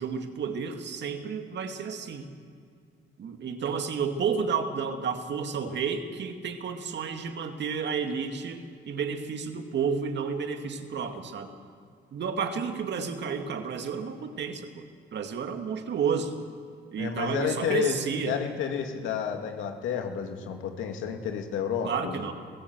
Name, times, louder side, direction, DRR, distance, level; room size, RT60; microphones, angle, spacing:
voice 1, 0.0-2.3 3.2-11.5 12.1-14.9 15.1-16.3 16.9-18.4 21.8-22.3, right 6 dB, 60° right, 6 dB, 2.1 m, -31 dB
voice 2, 17.0-18.0 18.2-22.2, left 8 dB, 90° left, 4 dB, 2.4 m, -30 dB
23.5 x 16.0 x 8.0 m, 2.2 s
cardioid pair, 90°, 20 cm